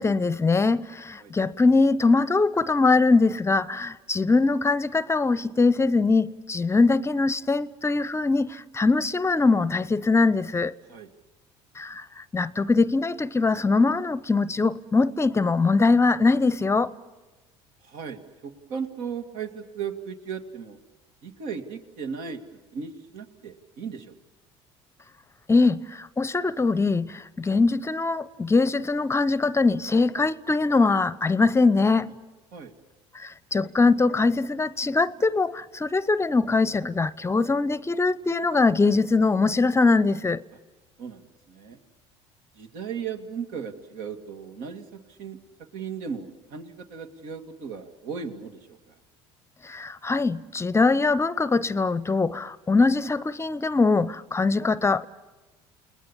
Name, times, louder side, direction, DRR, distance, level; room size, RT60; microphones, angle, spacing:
voice 1, 0.0-10.7 11.8-16.9 25.5-32.1 33.1-40.4 49.6-55.1, left 3 dB, 20° left, 0.7 m, -22 dB
voice 2, 17.8-20.8 21.2-22.4 22.7-24.1 32.5-32.7 41.0-41.8 42.5-45.4 45.7-48.9, right 6 dB, 70° right, 2.4 m, -36 dB
29.5 x 20.0 x 7.3 m
supercardioid pair, 80°, 14 cm